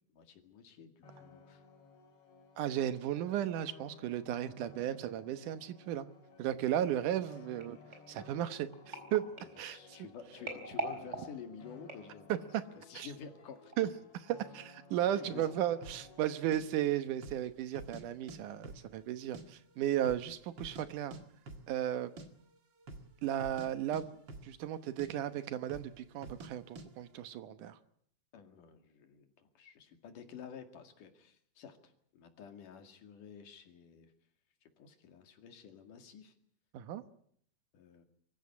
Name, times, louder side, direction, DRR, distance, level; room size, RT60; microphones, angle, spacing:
voice 1, 0.1-1.6 9.7-12.3 12.7-13.9 15.1-15.5 28.3-34.1 34.6-36.3 37.7-38.0, left 7 dB, 80° left, 6 dB, 3.7 m, -51 dB
sound 1, 1.0-16.5, left 4 dB, 50° left, 3.3 m, -57 dB
voice 2, 2.6-6.1 6.4-7.8 8.1-9.2 9.6-9.8 12.3-12.6 12.9-13.1 13.8-13.9 14.5-21.2 21.7-22.1 23.2-24.2 24.4-27.8 36.7-37.0, right 11 dB, 80° right, 11 dB, 2.7 m, -35 dB
sound 2, 7.6-12.6 13.2-13.4 13.7-13.8, right 2 dB, 20° right, 4.7 m, -44 dB
sound 3, 15.8-16.0 16.5-16.6 17.1-17.5 17.7-18.4 18.6-19.4 19.7-19.8 20.0-20.9 21.1-21.2 21.5-21.7 22.0-22.3 22.8-23.1 23.4-23.7 23.9-24.7 25.0-25.1 25.7-25.9 26.2-26.5 26.8-26.9, right 2 dB, 40° right, 2.3 m, -47 dB
24.0 x 14.5 x 9.7 m, 0.67 s
omnidirectional pair, 3.6 m